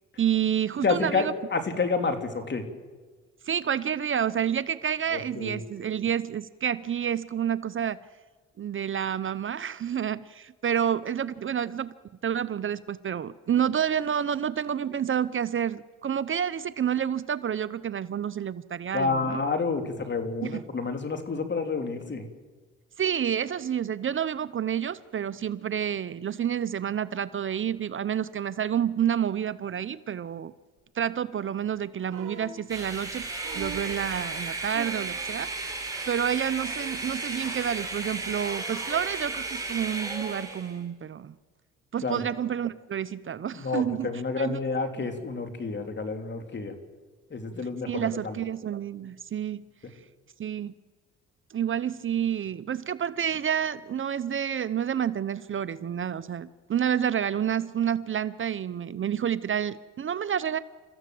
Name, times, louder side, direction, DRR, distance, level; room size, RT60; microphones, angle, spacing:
voice 1, 0.2-1.3 3.5-8.0 8.6-11.9 12.2-19.4 20.4-20.6 23.0-30.5 30.9-33.3 33.5-35.5 36.1-41.4 41.9-44.1 44.4-44.6 47.9-49.6 50.4-50.7 51.5-60.6, right 9 dB, 45° right, 15 dB, 0.7 m, -29 dB
voice 2, 0.8-2.6 5.1-5.6 18.9-22.3 42.0-42.2 43.5-46.7 47.3-48.4, left 4 dB, 35° left, 6 dB, 3.3 m, -29 dB
sound 1, 32.1-32.6 33.4-34.0 34.7-35.2 36.4-36.5, right 7 dB, 85° right, 2.6 m, -40 dB
sound 2, 32.7-40.8, right 3 dB, 10° right, 6.1 m, -34 dB
30.0 x 14.5 x 7.8 m, 1.4 s
cardioid pair, 90°, 30 cm